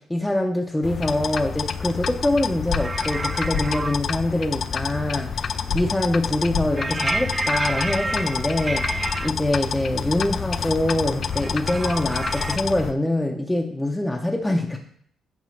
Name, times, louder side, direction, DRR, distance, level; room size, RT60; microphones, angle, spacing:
voice 1, 0.1-14.8, left 1 dB, 10° left, 0 dB, 0.7 m, -24 dB
sound 1, 0.8-12.9, left 6 dB, 55° left, 0.4 m, -28 dB
sound 2, 2.7-2.8 3.5-3.6 5.7-5.8 6.5-6.7, left 5 dB, 75° left, 1.0 m, -26 dB
sound 3, 2.8-4.0 6.8-9.3 11.3-12.6, right 2 dB, 25° right, 0.3 m, -29 dB
8.9 x 5.3 x 3.2 m, 0.64 s
cardioid pair, 90°, 0 cm